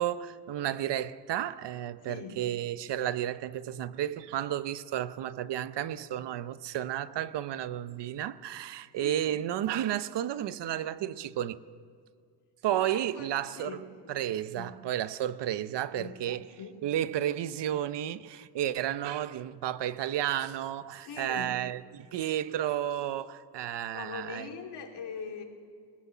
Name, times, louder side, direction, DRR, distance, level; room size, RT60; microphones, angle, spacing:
voice 1, 0.0-11.6 12.6-13.8 14.1-16.4 16.8-24.5, right 11 dB, 80° right, 0.8 m, -32 dB
voice 2, 2.0-2.4 9.0-9.4 12.7-14.7 15.9-16.7 21.0-21.7 23.9-25.4, left 5 dB, 75° left, 3.0 m, -43 dB
21.0 x 19.5 x 7.2 m
wide cardioid pair, 155°, 41 cm